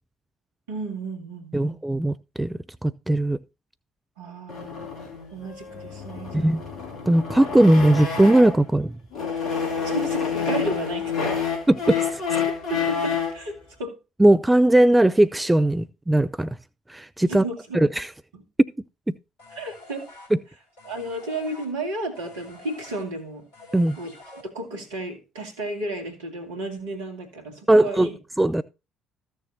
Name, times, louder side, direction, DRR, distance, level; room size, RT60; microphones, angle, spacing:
voice 1, 0.7-1.8 4.2-5.0 5.3-6.7 9.8-11.4 12.5-14.0 17.3-17.8 18.3-18.4 19.5-20.1 20.8-23.4 24.0-24.1 24.4-28.2, right 1 dB, 70° right, 2.1 m, -33 dB
voice 2, 1.5-3.4 6.3-6.6 7.1-8.9 11.7-12.2 14.2-16.6 16.9-17.4 17.7-18.1 18.6-18.7 19.1-19.2 20.3-20.4 23.7-24.0 27.7-28.1 28.4-28.6, right 1 dB, 10° right, 0.4 m, -19 dB
sound 1, 4.5-8.7 9.1-13.4, left 6 dB, 55° left, 2.8 m, -28 dB
sound 2, 19.4-24.9, left 2 dB, 70° left, 3.6 m, -47 dB
14.5 x 6.8 x 2.7 m
figure-of-eight pair, 50°, 0 cm